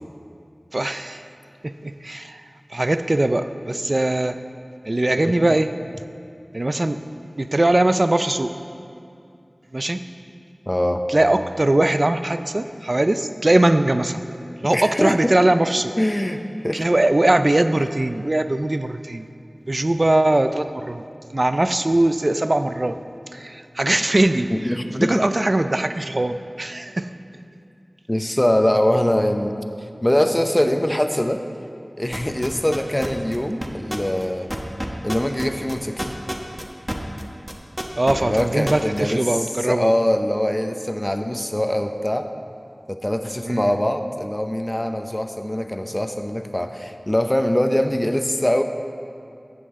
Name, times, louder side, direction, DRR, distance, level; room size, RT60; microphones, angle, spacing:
voice 1, 0.7-1.3 1.6-2.4 2.7-4.4 4.8-5.7 6.5-7.0 7.3-8.5 9.7-10.0 11.1-14.2 14.6-15.9 16.7-19.3 19.7-21.0 21.3-23.0 23.3-27.2 38.0-39.9 43.5-43.7, right 1 dB, 50° right, 10 dB, 0.4 m, -21 dB
voice 2, 10.7-11.0 14.7-15.3 16.0-16.9 24.5-25.2 28.1-29.6 30.0-31.4 32.0-34.5 35.0-36.1 38.2-42.3 42.9-48.6, left 1 dB, 20° left, 7 dB, 0.7 m, -22 dB
sound 1, 32.1-37.2 37.5-39.0, equal, 15° right, 1.1 m, -28 dB
14.5 x 7.8 x 3.7 m, 2.4 s
wide cardioid pair, 50°, 0 cm